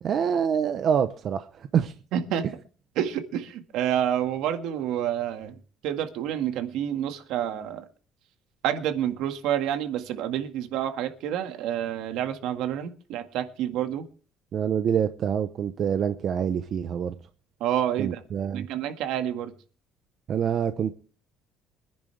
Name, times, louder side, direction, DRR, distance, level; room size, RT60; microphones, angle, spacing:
voice 1, 0.0-1.9 14.5-17.1 18.0-18.7 20.3-20.9, right 8 dB, 35° right, 0.8 m, -26 dB
voice 2, 2.1-2.5 3.0-5.6 5.8-7.9 8.6-14.1 17.6-18.2 18.5-19.5, right 10 dB, 70° right, 1.8 m, -28 dB
24.5 x 10.5 x 3.4 m
cardioid pair, 175°, 0 cm